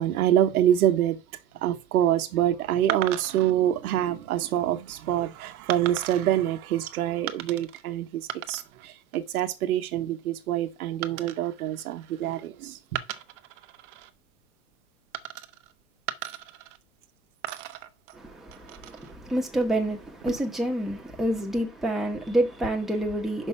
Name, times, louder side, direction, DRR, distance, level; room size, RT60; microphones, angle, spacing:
voice 1, 0.0-13.0, right 11 dB, 75° right, 1.2 m, -26 dB
sound 1, 2.9-3.5 4.2-4.6 5.7-6.3 7.3-7.8 8.1-8.9 9.1-9.6 11.0-12.5 12.9-14.1 15.1-15.7 16.1-17.1 17.4-19.1 20.1-20.7, right 13 dB, 55° right, 0.8 m, -37 dB
voice 2, 18.1-23.5, right 1 dB, ahead, 1.1 m, -28 dB
5.6 x 5.4 x 5.5 m
supercardioid pair, 145°, 44 cm